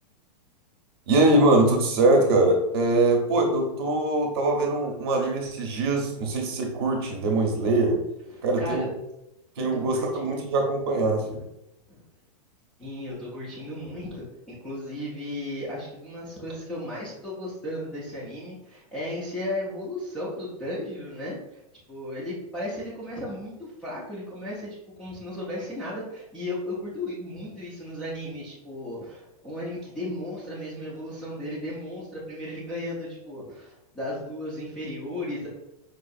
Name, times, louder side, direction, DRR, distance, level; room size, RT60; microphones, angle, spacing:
voice 1, 1.1-8.0 8.4-8.9 9.6-11.4, right 2 dB, 40° right, 2 dB, 0.7 m, -22 dB
voice 2, 8.3-8.9 9.6-10.6 11.9-12.0 12.8-21.6 21.9-35.5, left 1 dB, 5° left, -10 dB, 0.3 m, -35 dB
4.6 x 2.4 x 2.6 m, 0.88 s
supercardioid pair, 170°, 20 cm